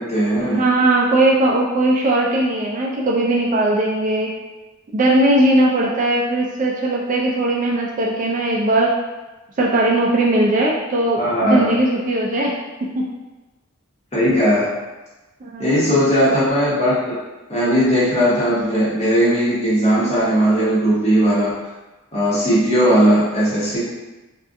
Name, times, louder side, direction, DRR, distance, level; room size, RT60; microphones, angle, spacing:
voice 1, 0.0-0.6 11.2-11.7 14.1-14.7 15.6-17.2 17.5-21.5 22.1-23.8, equal, 35° left, -8 dB, 1.1 m, -17 dB
voice 2, 0.5-4.3 4.9-8.9 9.6-12.6 12.8-13.1 15.4-15.9, right 1 dB, 40° right, -2 dB, 0.4 m, -18 dB
3.5 x 2.4 x 2.6 m, 1.1 s
head